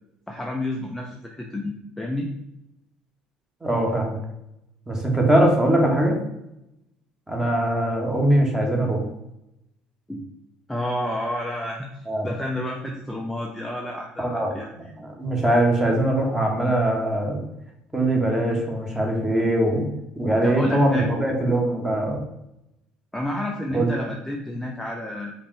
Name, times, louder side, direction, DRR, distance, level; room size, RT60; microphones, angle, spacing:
voice 1, 0.3-2.3 10.1-10.2 10.7-14.9 20.4-21.1 23.1-25.3, left 1 dB, 5° left, 0 dB, 0.6 m, -30 dB
voice 2, 3.6-4.2 4.9-6.2 7.3-9.1 12.1-12.3 14.2-14.5 15.0-17.4 17.9-22.2 23.7-23.9, right 1 dB, 10° right, 0 dB, 1.3 m, -22 dB
5.2 x 2.6 x 3.2 m, 0.85 s
figure-of-eight pair, 60°, 4 cm